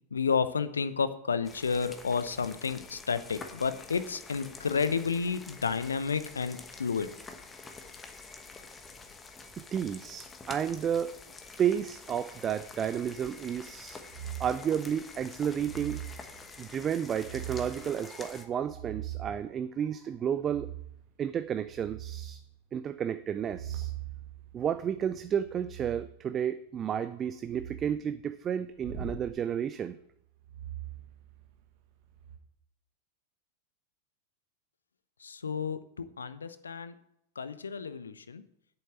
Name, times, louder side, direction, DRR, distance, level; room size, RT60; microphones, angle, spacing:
voice 1, 0.1-7.1 35.2-36.9 37.4-38.4, left 5 dB, 70° left, 13 dB, 0.7 m, -31 dB
sound 1, 1.4-18.5, left 4 dB, 15° left, 1.2 m, -48 dB
voice 2, 9.7-11.1 11.6-14.0 14.4-16.0 16.6-20.7 21.2-22.4 22.7-23.9 24.5-30.0, right 8 dB, 25° right, 12 dB, 0.4 m, -32 dB
sound 2, 14.1-14.7 15.5-16.2 17.1-17.8 18.5-19.5 20.4-21.0 21.5-22.4 23.3-26.1 27.4-27.9 28.8-29.3 30.4-31.7 32.1-32.4, right 10 dB, 50° right, 1.6 m, -41 dB
8.6 x 7.1 x 7.8 m, 0.76 s
figure-of-eight pair, 90°, 0 cm